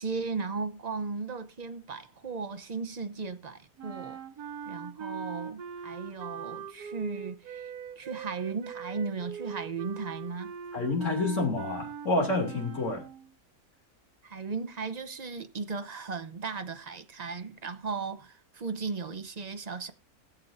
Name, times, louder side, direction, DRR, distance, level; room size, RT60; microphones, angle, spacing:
voice 1, 0.0-4.2 4.7-7.7 8.0-10.5 14.2-19.9, right 4 dB, 35° right, 0.8 m, -36 dB
sound 1, 3.8-13.3, right 7 dB, 85° right, 1.4 m, -41 dB
voice 2, 10.7-13.0, left 2 dB, 55° left, 3.0 m, -28 dB
21.0 x 7.2 x 2.6 m
omnidirectional pair, 1.6 m